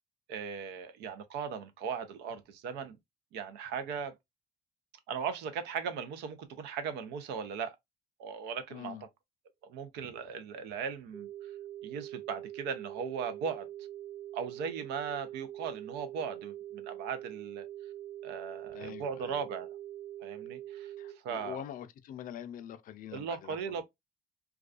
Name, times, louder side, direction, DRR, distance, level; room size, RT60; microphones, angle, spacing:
voice 1, 0.3-3.0 3.3-4.1 5.1-7.8 8.2-9.0 9.6-11.3 11.8-13.7 14.3-17.7 18.2-19.8 20.2-20.9 21.2-21.6 23.1-23.8, right 6 dB, 90° right, 0.5 m, -38 dB
voice 2, 8.7-9.0 18.7-19.4 21.0-23.8, left 10 dB, 55° left, 0.4 m, -44 dB
sound 1, 11.1-21.1, right 12 dB, 50° right, 1.2 m, -44 dB
2.3 x 2.2 x 2.3 m
cardioid pair, 110°, 17 cm